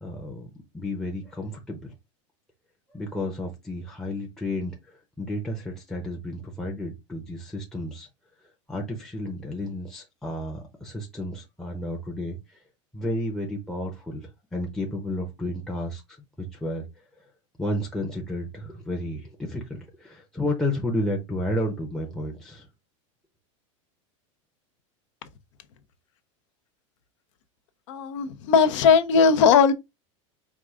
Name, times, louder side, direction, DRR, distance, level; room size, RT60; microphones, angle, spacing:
voice 1, 0.0-1.9 2.9-8.1 8.4-12.6 12.9-16.0 16.4-17.3 17.6-22.7, left 1 dB, 5° left, 0.7 m, -32 dB
voice 2, 27.9-29.7, left 6 dB, 70° left, 0.7 m, -18 dB
4.6 x 2.4 x 3.5 m
supercardioid pair, 145°, 16 cm